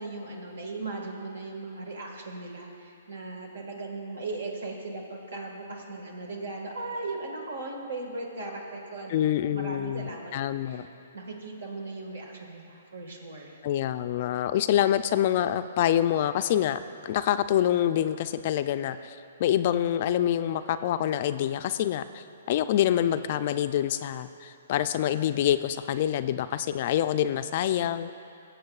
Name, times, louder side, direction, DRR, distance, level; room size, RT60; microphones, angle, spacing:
voice 1, 0.0-10.3 10.7-13.6, right 2 dB, 80° right, 1 dB, 1.7 m, -38 dB
voice 2, 9.1-10.8 13.6-28.1, left 11 dB, 50° left, 11 dB, 0.3 m, -26 dB
21.5 x 7.6 x 2.4 m, 2.6 s
hypercardioid pair, 140°, 0 cm